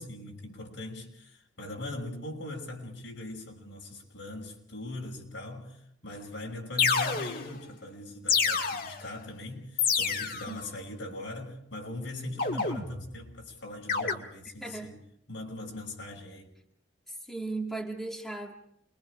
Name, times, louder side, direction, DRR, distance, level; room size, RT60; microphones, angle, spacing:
voice 1, 0.0-15.0 15.3-16.5, left 1 dB, 80° left, 5.8 m, -41 dB
sound 1, 6.1-6.2 6.8-7.6 8.3-9.1 9.8-10.6 12.4-13.2 13.9-14.1, left 5 dB, 50° left, 1.9 m, -28 dB
voice 2, 14.6-15.0 17.1-18.5, right 3 dB, ahead, 2.0 m, -37 dB
28.5 x 23.0 x 5.0 m
head